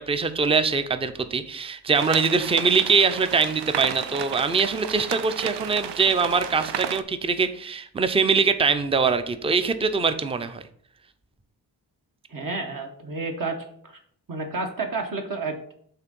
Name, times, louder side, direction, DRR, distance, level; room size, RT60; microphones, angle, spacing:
voice 1, 0.0-10.6, right 5 dB, 15° right, 10 dB, 0.4 m, -23 dB
sound 1, 1.9-7.0, right 9 dB, 85° right, 0.5 m, -33 dB
voice 2, 12.3-14.0 14.3-15.7, right 3 dB, 55° right, 3 dB, 1.1 m, -31 dB
5.8 x 3.8 x 5.2 m, 0.63 s
wide cardioid pair, 85°, 40 cm